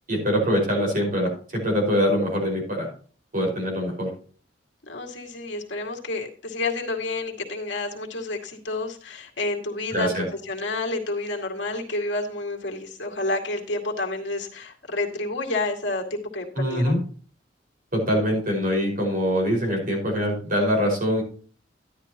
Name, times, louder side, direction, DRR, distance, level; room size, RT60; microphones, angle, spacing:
voice 1, 0.1-2.9 3.3-4.1 9.9-10.3 16.6-17.0 17.9-21.2, equal, 50° right, 1 dB, 5.3 m, -23 dB
voice 2, 4.9-16.9, left 2 dB, 75° left, 0 dB, 2.3 m, -29 dB
12.5 x 11.0 x 3.0 m, 0.41 s
head